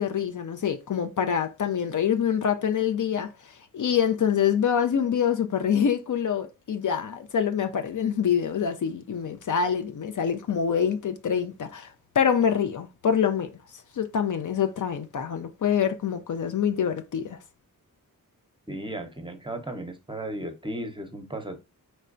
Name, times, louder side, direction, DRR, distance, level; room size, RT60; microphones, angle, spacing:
voice 1, 0.0-3.3 3.7-11.9 12.2-13.5 14.0-17.4, left 8 dB, 60° left, 0.5 m, -25 dB
voice 2, 18.7-21.6, right 1 dB, 15° right, 0.7 m, -35 dB
4.3 x 3.2 x 2.5 m
wide cardioid pair, 75°, 35 cm